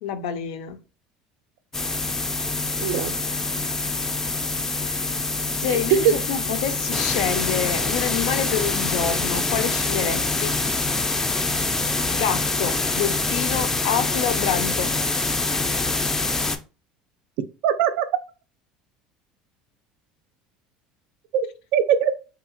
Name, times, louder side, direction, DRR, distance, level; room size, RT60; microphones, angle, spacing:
voice 1, 0.0-0.8 3.7-4.1 5.6-10.5 12.1-15.0, left 8 dB, 75° left, 0.4 m, -27 dB
sound 1, 1.7-16.6, left 3 dB, 15° left, 0.3 m, -25 dB
voice 2, 2.8-3.1 5.7-6.1 17.6-18.1 21.3-22.1, right 8 dB, 70° right, 0.3 m, -21 dB
2.8 x 2.4 x 2.5 m
hypercardioid pair, 85°, 3 cm